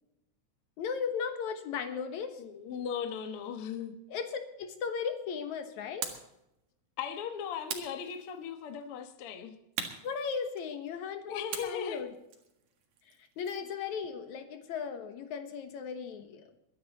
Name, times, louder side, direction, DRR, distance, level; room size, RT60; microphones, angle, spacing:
voice 1, 0.8-2.4 4.1-6.1 10.0-12.1 13.1-16.5, left 6 dB, 80° left, 7 dB, 2.6 m, -36 dB
voice 2, 2.4-4.0 7.0-9.6 11.3-12.0, left 7 dB, 55° left, 6 dB, 2.0 m, -38 dB
sound 1, 6.0-6.4 7.7-8.6 9.8-10.9 11.5-13.7, right 7 dB, 85° right, 3.1 m, -41 dB
22.5 x 10.0 x 4.1 m, 0.84 s
omnidirectional pair, 3.3 m